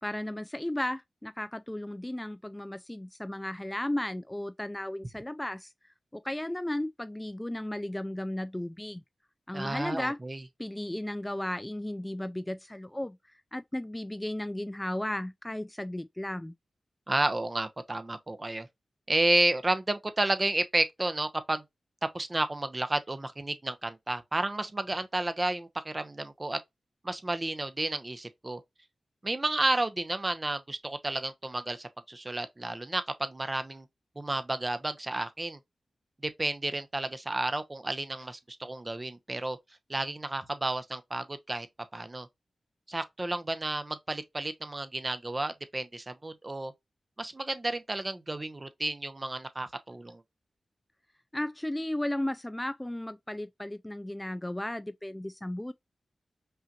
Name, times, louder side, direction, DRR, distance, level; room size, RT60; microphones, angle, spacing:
voice 1, 0.0-5.7 6.1-9.0 9.5-10.2 10.6-16.5 51.3-55.7, left 1 dB, 15° left, 0.3 m, -35 dB
voice 2, 9.5-10.4 17.1-18.7 19.1-21.6 22.0-26.6 27.0-28.6 29.2-33.9 34.2-35.6 36.2-39.6 39.9-41.7 41.9-42.3 42.9-46.7 47.2-50.2, right 2 dB, 35° right, 0.8 m, -31 dB
5.6 x 2.5 x 2.8 m
cardioid pair, 45°, 0 cm